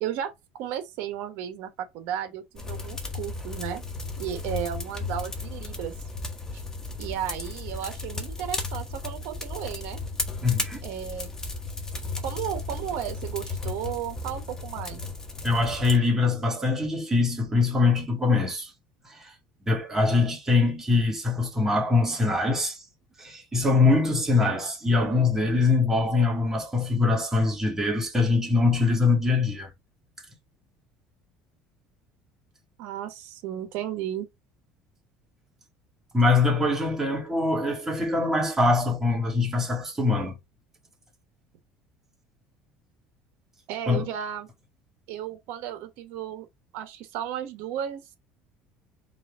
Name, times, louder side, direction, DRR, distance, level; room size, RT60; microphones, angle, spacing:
voice 1, 0.0-3.8 4.2-5.9 6.5-6.6 7.0-10.0 10.8-11.3 12.2-15.0 32.8-34.3 43.7-44.5 45.1-46.5 46.7-48.0, right 10 dB, 70° right, 1.2 m, -34 dB
sound 1, 2.6-16.0, left 3 dB, 15° left, 1.1 m, -35 dB
voice 2, 10.4-10.8 15.4-18.7 19.1-19.3 19.7-22.8 23.2-29.7 36.1-40.3 43.9-44.1, left 3 dB, 10° right, 2.2 m, -23 dB
4.9 x 2.7 x 3.6 m
cardioid pair, 130°, 4 cm